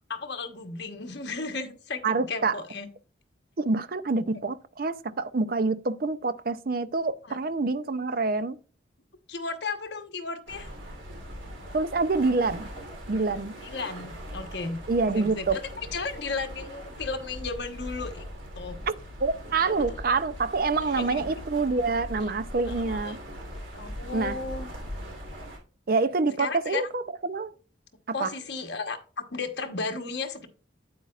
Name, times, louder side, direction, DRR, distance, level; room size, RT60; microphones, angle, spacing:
voice 1, 0.1-2.9 7.2-7.4 9.3-10.7 13.6-14.8 15.1-18.2 18.6-18.9 19.7-20.0 21.0-21.2 22.7-23.1 23.7-24.7 26.4-26.9 28.1-30.5, left 4 dB, 60° left, 1.1 m, -34 dB
voice 2, 2.0-2.6 3.6-8.6 11.7-12.7 13.1-13.5 14.9-15.6 19.2-23.2 24.1-24.3 25.9-27.5 28.2-28.3, right 3 dB, 50° right, 0.5 m, -26 dB
sound 1, 10.5-25.6, equal, 80° right, 3.2 m, -40 dB
8.6 x 8.2 x 2.4 m
head